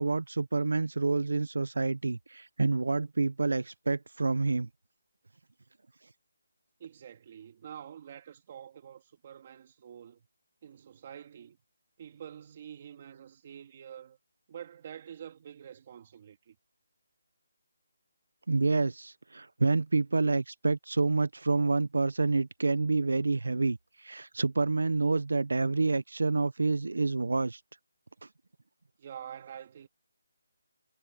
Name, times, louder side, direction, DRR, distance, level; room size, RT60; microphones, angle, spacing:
voice 1, 0.0-4.7 18.5-27.6, right 3 dB, 90° right, 0.8 m, -28 dB
voice 2, 6.8-10.3 10.6-11.6 12.0-14.2 14.5-16.6 29.0-29.9, right 9 dB, 25° right, 2.4 m, -47 dB
hypercardioid pair, 175°, 0 cm